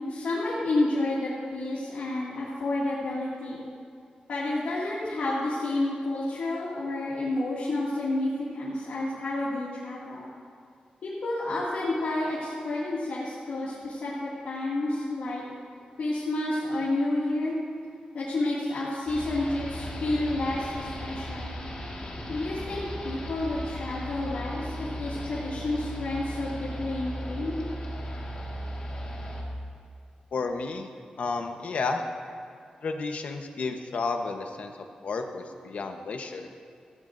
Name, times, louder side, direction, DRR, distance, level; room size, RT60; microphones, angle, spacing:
voice 1, 0.1-3.6 4.3-10.3 11.0-15.4 16.0-17.6 18.1-21.5 22.3-27.6, left 2 dB, 80° left, -9 dB, 2.3 m, -30 dB
sound 1, 19.1-29.4, equal, 40° left, 1.8 m, -36 dB
voice 2, 30.3-30.9 31.2-32.0 32.8-34.7 35.0-36.5, left 4 dB, 60° left, 5 dB, 1.0 m, -31 dB
17.5 x 15.0 x 2.6 m, 2.3 s
wide cardioid pair, 175°, 3 cm